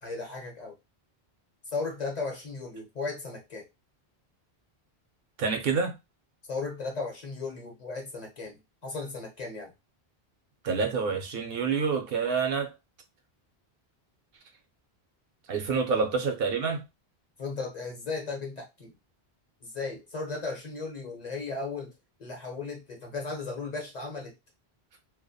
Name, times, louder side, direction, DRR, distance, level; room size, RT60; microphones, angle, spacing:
voice 1, 0.0-0.7 1.7-3.7 6.5-9.7 17.4-18.9 19.6-21.9 22.2-24.3, left 3 dB, 45° left, 0.8 m, -36 dB
voice 2, 5.4-6.0 10.6-12.7 15.5-16.8, right 5 dB, 70° right, 0.7 m, -27 dB
2.3 x 2.1 x 2.6 m
omnidirectional pair, 1.0 m